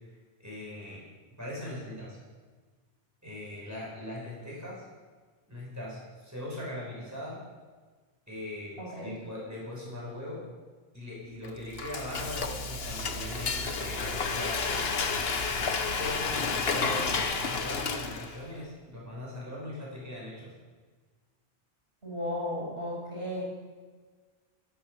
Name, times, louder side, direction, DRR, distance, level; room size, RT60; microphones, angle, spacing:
voice 1, 0.1-1.0 1.4-2.2 3.2-4.9 5.5-7.4 8.3-10.4 10.9-15.1 16.0-20.5, left 1 dB, 15° right, -5 dB, 6.8 m, -40 dB
voice 2, 8.8-9.2 22.0-23.4, left 1 dB, 70° right, -5 dB, 6.6 m, -35 dB
Frying (food), 11.4-18.5, left 4 dB, 70° left, 1.4 m, -31 dB
22.0 x 9.3 x 7.1 m, 1.4 s
omnidirectional pair, 1.1 m